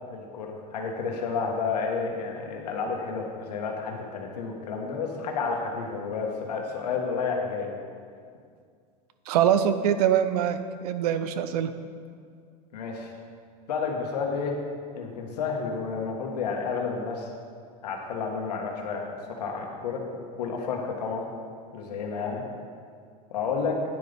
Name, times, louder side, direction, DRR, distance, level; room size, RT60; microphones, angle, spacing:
voice 1, 0.1-7.7 12.7-13.1 13.7-14.5 14.9-17.3 17.8-20.0 20.4-21.3 21.7-22.4 23.3-23.8, left 5 dB, 90° left, 1 dB, 1.6 m, -31 dB
voice 2, 9.3-11.7, right 9 dB, 80° right, 11 dB, 0.7 m, -24 dB
10.5 x 9.7 x 3.5 m, 2.2 s
supercardioid pair, 105°, 20 cm